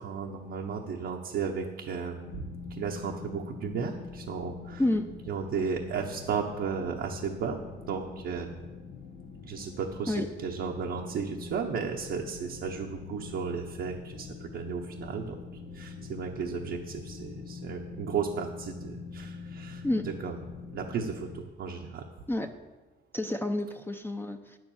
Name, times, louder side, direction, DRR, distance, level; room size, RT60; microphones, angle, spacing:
voice 1, 0.0-2.4 2.7-4.8 5.3-7.6 7.9-8.6 9.4-15.4 15.7-20.4 20.7-22.0, right 6 dB, 75° right, 0 dB, 1.0 m, -34 dB
sound 1, 2.2-21.4, left 5 dB, 90° left, 1.1 m, -44 dB
voice 2, 4.8-5.2 10.1-10.3 19.8-20.1 22.3-22.6 23.1-24.6, left 1 dB, 10° left, 5 dB, 0.6 m, -29 dB
9.4 x 7.8 x 7.2 m, 1.2 s
cardioid pair, 90°, 20 cm